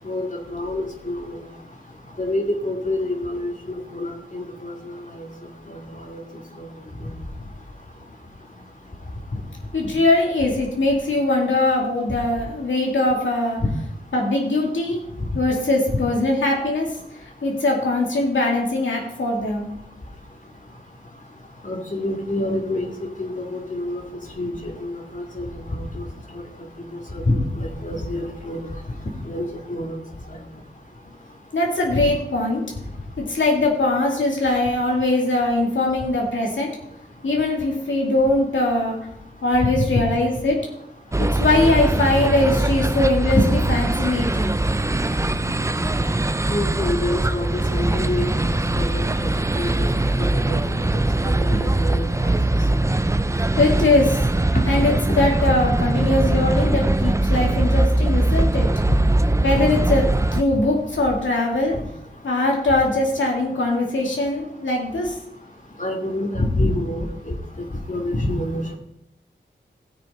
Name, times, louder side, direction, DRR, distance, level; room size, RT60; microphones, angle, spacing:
voice 1, 0.1-1.4 2.2-4.7 6.1-6.2 6.6-6.7 13.6-13.7 21.6-22.9 23.2-24.0 24.4-25.5 25.8-26.0 26.3-26.4 27.1-28.6 29.3-29.9 31.9-32.1 39.6-40.0 43.3-43.4 46.5-48.3 48.8-49.3 49.6-49.9 50.5-50.6 51.2-52.3 54.5-54.6 55.1-55.2 57.4-57.5 65.8-67.3 67.9-68.8, left 1 dB, 40° left, 0 dB, 2.3 m, -26 dB
voice 2, 9.7-13.6 14.1-15.0 15.3-16.9 17.4-19.7 31.5-32.6 33.2-36.7 37.2-39.0 39.4-40.6 41.2-43.4 43.7-44.5 53.6-54.2 54.7-58.7 59.4-60.1 60.3-61.8 62.2-65.2, left 2 dB, 85° left, -1 dB, 2.4 m, -21 dB
sound 1, 41.1-60.4, right 2 dB, 15° right, 0.5 m, -21 dB
16.5 x 6.8 x 4.3 m, 0.78 s
wide cardioid pair, 55°, 19 cm